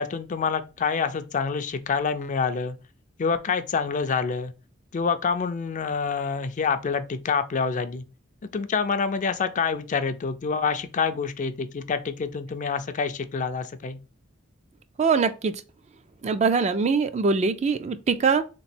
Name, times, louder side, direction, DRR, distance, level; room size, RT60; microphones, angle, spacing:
voice 1, 0.0-2.8 3.2-4.5 4.9-8.0 8.5-14.0, left 5 dB, 40° left, 0.4 m, -27 dB
voice 2, 15.0-15.5 16.2-18.4, right 5 dB, 35° right, 0.3 m, -22 dB
3.5 x 3.0 x 4.2 m
head